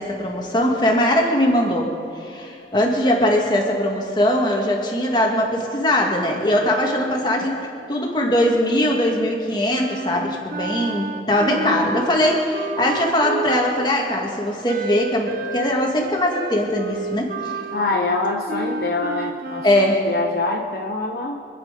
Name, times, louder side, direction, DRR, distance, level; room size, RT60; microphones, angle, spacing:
voice 1, 0.0-1.9 2.2-17.5 19.6-20.1, left 1 dB, 25° left, 0 dB, 2.0 m, -21 dB
Wind instrument woodwind instrument, 9.8-13.9 14.6-20.1, right 2 dB, 50° right, 0.8 m, -30 dB
voice 2, 11.5-11.9 17.7-21.4, left 2 dB, 55° left, 1 dB, 0.9 m, -25 dB
26.0 x 9.0 x 5.3 m, 2.5 s
head